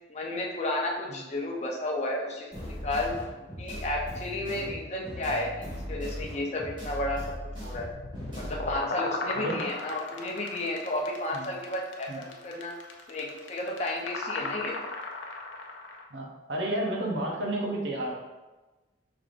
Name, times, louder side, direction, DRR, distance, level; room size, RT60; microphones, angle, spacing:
voice 1, 0.1-3.1 3.6-7.9 8.3-12.7 13.1-14.8, left 1 dB, 35° left, 0 dB, 0.6 m, -32 dB
sound 1, 2.5-8.7, equal, 25° right, 1.2 m, -39 dB
voice 2, 4.4-4.8 9.4-9.6 11.3-11.5 12.1-12.2 14.4-14.5 16.1-18.1, right 1 dB, 65° right, 0 dB, 0.8 m, -32 dB
sound 2, 7.9-16.0, left 2 dB, 75° left, 0.6 m, -36 dB
5.2 x 3.4 x 2.5 m, 1.2 s
head